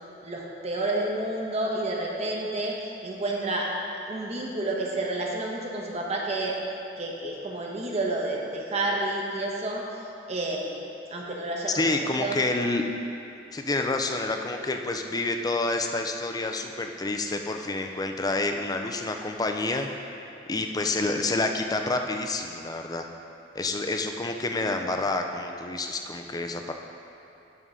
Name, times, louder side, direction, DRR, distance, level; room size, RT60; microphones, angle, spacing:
voice 1, 0.2-3.7 4.1-6.6 7.0-9.8 10.3-10.8 11.1-12.4, right 2 dB, 35° right, -2 dB, 1.0 m, -30 dB
voice 2, 11.7-12.8 13.5-20.1 20.5-23.1 23.5-26.7, left 2 dB, 20° left, 4 dB, 0.4 m, -28 dB
11.0 x 3.8 x 5.5 m, 2.7 s
head